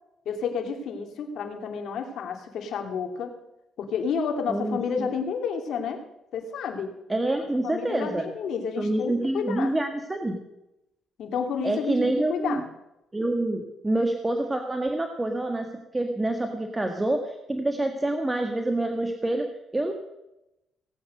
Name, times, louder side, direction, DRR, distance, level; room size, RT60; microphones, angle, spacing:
voice 1, 0.2-3.3 3.8-6.0 6.3-6.9 7.6-9.7 11.2-12.6, left 6 dB, 70° left, 4 dB, 2.7 m, -30 dB
voice 2, 4.5-5.1 7.1-8.3 8.8-10.4 11.6-12.6 13.1-15.7 15.9-19.5 19.7-19.9, right 1 dB, 15° right, 4 dB, 1.6 m, -27 dB
18.0 x 8.8 x 6.5 m, 0.89 s
cardioid pair, 90°, 0 cm